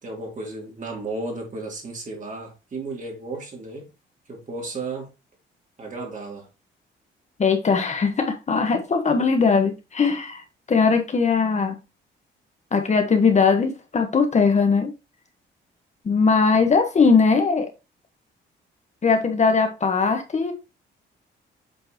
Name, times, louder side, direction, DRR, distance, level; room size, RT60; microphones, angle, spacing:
voice 1, 0.0-3.9 4.3-5.1 5.8-6.5 16.5-16.7, right 3 dB, 40° right, 2.9 m, -34 dB
voice 2, 7.4-11.8 12.7-14.9 16.0-17.7 19.0-20.5, left 5 dB, 35° left, 1.2 m, -20 dB
7.9 x 4.5 x 3.0 m
cardioid pair, 90°, 20 cm